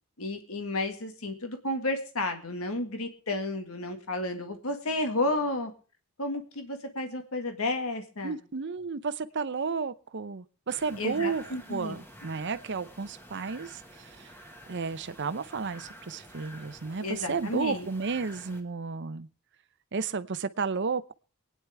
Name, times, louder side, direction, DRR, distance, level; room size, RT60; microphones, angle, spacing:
voice 1, 0.2-5.7 6.2-8.4 11.0-12.0 17.0-17.9, left 2 dB, 70° left, 6 dB, 1.9 m, -32 dB
voice 2, 8.2-11.4 11.7-14.3 14.7-19.3 19.9-21.1, right 5 dB, 55° right, 14 dB, 0.7 m, -32 dB
sound 1, 10.7-18.6, equal, 10° left, 1.7 m, -50 dB
24.5 x 9.6 x 3.5 m, 0.37 s
head